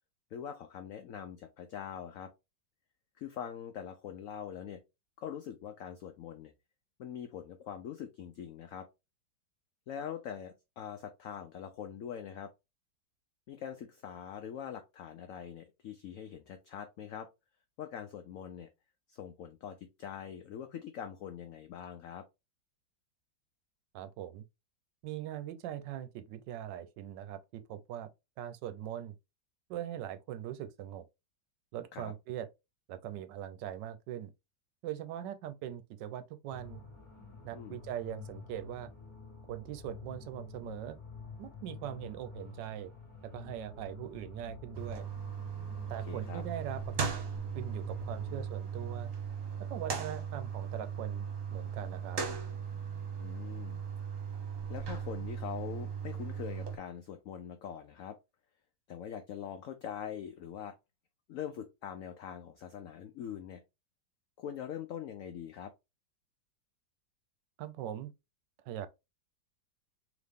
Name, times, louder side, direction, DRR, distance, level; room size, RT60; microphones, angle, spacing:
voice 1, 0.3-2.3 3.2-4.8 5.2-6.5 7.0-8.9 9.9-12.5 13.5-17.3 17.8-18.7 19.1-22.2 31.9-32.1 37.5-37.8 45.9-46.4 53.2-53.8 54.7-58.2 58.9-60.8 61.3-63.6 64.4-65.7, left 8 dB, 85° left, 0.7 m, -43 dB
voice 2, 23.9-24.4 25.0-28.1 28.4-29.1 29.7-31.0 31.7-32.5 32.9-34.3 34.8-36.8 37.4-38.9 39.5-41.0 41.4-42.9 43.3-45.1 45.9-47.1 47.5-49.1 49.7-51.2 51.5-52.2 67.6-68.1 68.6-68.9, right 11 dB, 80° right, 1.2 m, -41 dB
sound 1, 36.5-48.5, left 4 dB, 30° left, 1.1 m, -49 dB
sound 2, 44.7-56.8, right 6 dB, 55° right, 1.2 m, -38 dB
3.9 x 2.9 x 3.4 m
omnidirectional pair, 2.0 m